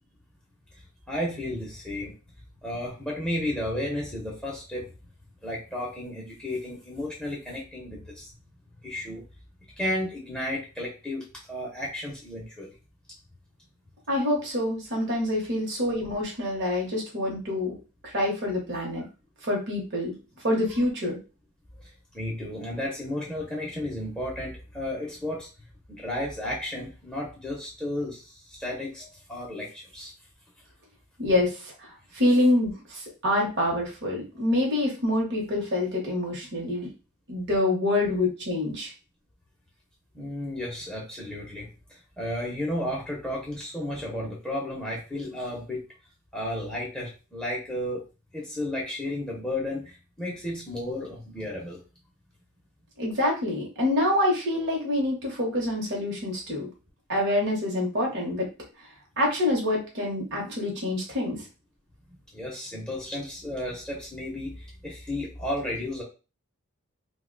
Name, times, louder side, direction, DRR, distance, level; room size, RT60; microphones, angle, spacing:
voice 1, 1.1-2.1 2.6-4.9 5.4-8.3 8.8-9.2 9.8-12.7 21.8-25.5 25.9-30.1 40.1-45.8 46.3-48.0 48.3-51.8 62.3-66.0, left 1 dB, 5° left, -4 dB, 0.7 m, -33 dB
voice 2, 14.1-17.8 18.0-19.1 19.4-20.2 20.4-21.2 31.2-36.9 37.3-38.9 53.0-56.7 57.1-58.5 59.2-61.5, left 1 dB, 50° right, -1 dB, 0.9 m, -26 dB
2.7 x 2.2 x 3.7 m, 0.32 s
head